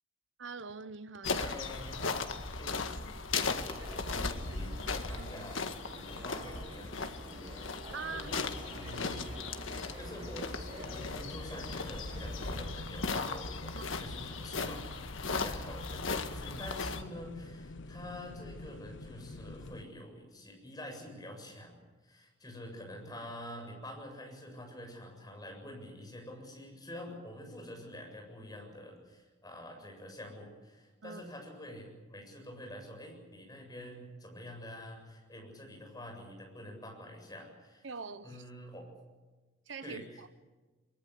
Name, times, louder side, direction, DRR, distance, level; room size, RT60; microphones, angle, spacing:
voice 1, 0.4-1.5 5.1-5.3 7.9-8.8 13.7-14.0 15.3-15.4 31.0-31.2 37.8-38.4 39.7-40.3, right 4 dB, 70° right, 0.9 m, -44 dB
sound 1, 1.2-17.0, left 4 dB, 85° left, 1.9 m, -37 dB
voice 2, 1.4-7.8 8.1-9.2 10.0-21.8 22.0-37.8 38.2-38.9 39.8-40.3, left 1 dB, 20° left, 7.6 m, -47 dB
sound 2, 3.5-12.7, equal, 25° right, 7.8 m, -48 dB
sound 3, 10.8-19.8, left 2 dB, 65° left, 0.7 m, -47 dB
23.5 x 23.0 x 8.5 m
head